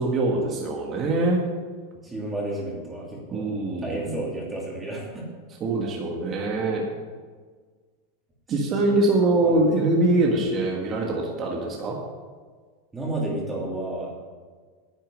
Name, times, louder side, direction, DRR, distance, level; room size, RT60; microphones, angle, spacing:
voice 1, 0.0-1.4 3.3-4.1 5.6-6.8 8.5-12.0, right 2 dB, 30° right, -1 dB, 1.6 m, -23 dB
voice 2, 2.0-5.2 6.5-6.6 8.8-9.0 9.4-9.6 12.9-14.1, right 1 dB, 10° right, -3 dB, 2.9 m, -32 dB
10.5 x 8.8 x 6.3 m, 1.5 s
supercardioid pair, 150°, 0 cm